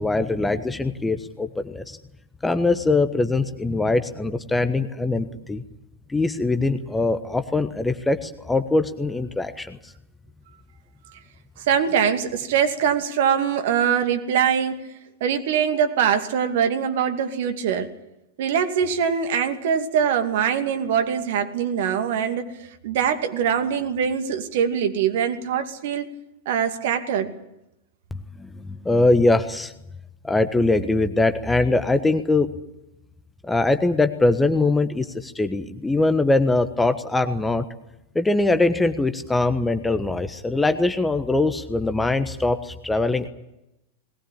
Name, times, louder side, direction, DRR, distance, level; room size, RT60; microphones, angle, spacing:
voice 1, 0.0-2.0 2.4-5.6 6.1-9.8 28.1-29.7 30.2-32.5 33.4-37.7 38.1-43.3, left 2 dB, 10° left, 10 dB, 1.3 m, -22 dB
voice 2, 11.6-14.9 15.2-17.9 18.4-26.1 26.5-27.3, right 8 dB, 55° right, 7 dB, 2.4 m, -23 dB
21.0 x 19.5 x 8.7 m, 0.89 s
figure-of-eight pair, 90°, 0 cm